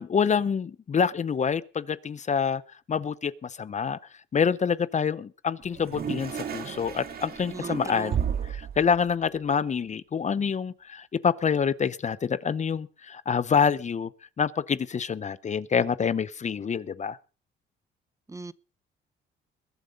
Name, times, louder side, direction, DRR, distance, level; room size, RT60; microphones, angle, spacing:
voice 1, 0.0-2.6 2.9-4.0 4.3-14.1 14.4-17.2, left 6 dB, 35° left, 0.7 m, -27 dB
Toilet flush, 5.6-8.7, right 7 dB, 50° right, 2.1 m, -37 dB
voice 2, 7.5-8.1 18.3-18.5, right 3 dB, 15° right, 0.7 m, -38 dB
Bass drum, 8.1-9.5, right 9 dB, 65° right, 1.2 m, -30 dB
22.0 x 7.8 x 5.2 m
cardioid pair, 90°, 20 cm